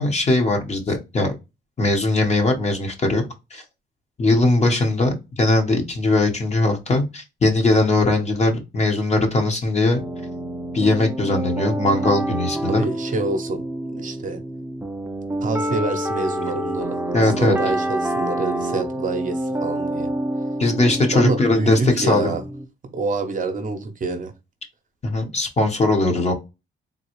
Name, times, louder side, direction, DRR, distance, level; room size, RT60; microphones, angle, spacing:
voice 1, 0.0-1.3 1.8-3.2 3.5-3.6 4.2-10.0 10.7-12.8 17.1-17.5 20.6-22.3 25.0-26.3, left 2 dB, 35° left, 1.1 m, -20 dB
sound 1, 10.0-22.7, right 1 dB, 10° right, 0.6 m, -27 dB
voice 2, 12.6-13.6 13.9-14.4 15.4-17.0 17.4-20.1 21.1-22.4 22.9-24.3, right 3 dB, 40° right, 0.8 m, -26 dB
3.8 x 2.3 x 3.0 m
cardioid pair, 90°, 20 cm